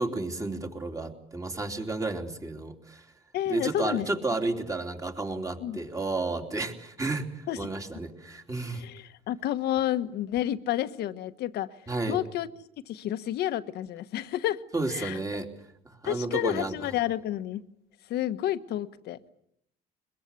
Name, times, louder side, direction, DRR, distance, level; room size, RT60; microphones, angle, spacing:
voice 1, 0.0-3.0 3.5-8.8 11.9-12.2 14.7-15.5 16.0-16.7, right 2 dB, 20° right, 4 dB, 3.3 m, -32 dB
voice 2, 3.3-4.1 5.6-5.8 7.5-7.7 8.7-12.5 12.9-14.6 14.9-15.2 16.0-17.6 18.0-19.2, left 12 dB, 75° left, 11 dB, 1.3 m, -30 dB
22.5 x 22.0 x 8.3 m, 0.76 s
cardioid pair, 110°, 17 cm